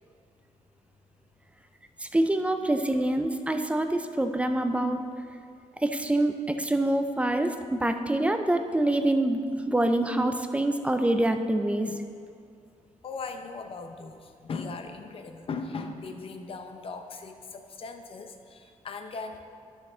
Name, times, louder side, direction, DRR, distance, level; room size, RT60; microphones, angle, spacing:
voice 1, 2.0-5.1 5.8-9.4 9.7-12.0, right 1 dB, 10° right, 7 dB, 0.4 m, -26 dB
voice 2, 13.0-19.4, left 4 dB, 45° left, 6 dB, 0.6 m, -38 dB
12.5 x 6.0 x 3.8 m, 2.3 s
wide cardioid pair, 160°, 13 cm